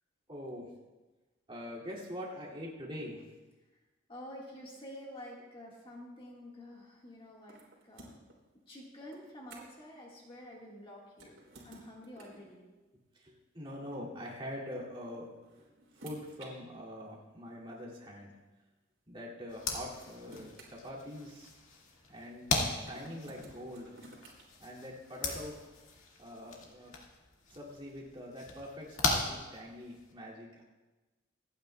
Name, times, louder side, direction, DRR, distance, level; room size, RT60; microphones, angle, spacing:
voice 1, 0.3-0.7 1.5-3.3 13.1-15.2 15.9-18.3 19.1-21.5 22.1-24.0 24.6-25.6 26.2-26.9 27.5-30.6, equal, 25° right, -5 dB, 2.5 m, -44 dB
voice 2, 4.1-8.1 8.7-11.4 11.6-12.7, left 1 dB, 25° left, -3 dB, 1.7 m, -49 dB
sound 1, 7.5-8.4 9.1-9.9 11.1-12.5 13.8-13.9 15.1-16.5 17.5-17.6 19.2-19.3 19.7-21.5 22.8-24.4, right 2 dB, 75° right, 3.3 m, -54 dB
sound 2, 19.5-30.1, left 3 dB, 90° left, 2.0 m, -38 dB
26.5 x 9.4 x 2.3 m, 1.2 s
head